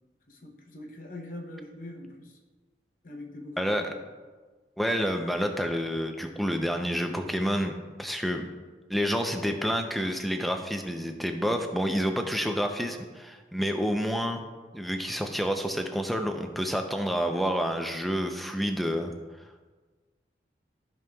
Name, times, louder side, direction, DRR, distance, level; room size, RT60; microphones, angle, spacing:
voice 1, 0.3-2.4 3.0-4.0, left 1 dB, 45° left, 1 dB, 0.8 m, -43 dB
voice 2, 3.6-3.9 4.8-8.5 8.9-14.4 14.7-19.1, equal, ahead, 4 dB, 0.5 m, -29 dB
14.0 x 5.3 x 2.3 m, 1.4 s
head